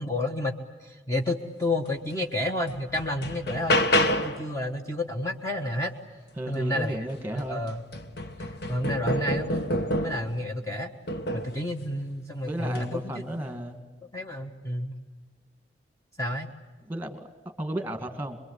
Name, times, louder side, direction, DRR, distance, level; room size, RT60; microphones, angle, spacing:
voice 1, 0.0-5.9 6.5-7.1 7.3-7.8 8.4-10.9 11.3-13.2 14.1-14.9 16.2-16.5, left 1 dB, 15° left, 2 dB, 1.4 m, -30 dB
sound 1, 2.1-2.2 2.7-4.5 6.9-7.0 7.4-10.4 11.1-11.6 12.6-12.9, left 1 dB, 60° left, 1.4 m, -28 dB
voice 2, 6.4-7.6 12.4-13.8 16.9-17.3 17.6-18.4, right 1 dB, 10° right, 7 dB, 2.1 m, -33 dB
26.5 x 22.5 x 8.2 m, 1.4 s
head